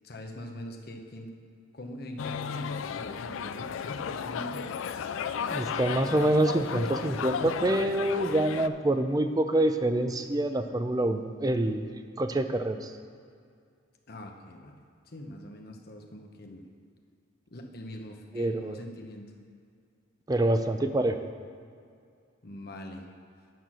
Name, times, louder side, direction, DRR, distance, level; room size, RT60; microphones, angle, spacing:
voice 1, 0.0-1.3 1.7-4.6 14.1-14.8 15.1-16.7 17.5-19.3 22.4-23.0, left 1 dB, 50° left, 3 dB, 0.9 m, -43 dB
sound 1, 2.2-8.7, left 6 dB, 80° left, 0.4 m, -34 dB
voice 2, 5.5-13.0 18.3-18.8 20.3-21.2, right 1 dB, 20° right, 8 dB, 0.4 m, -26 dB
9.4 x 5.9 x 6.1 m, 2.3 s
head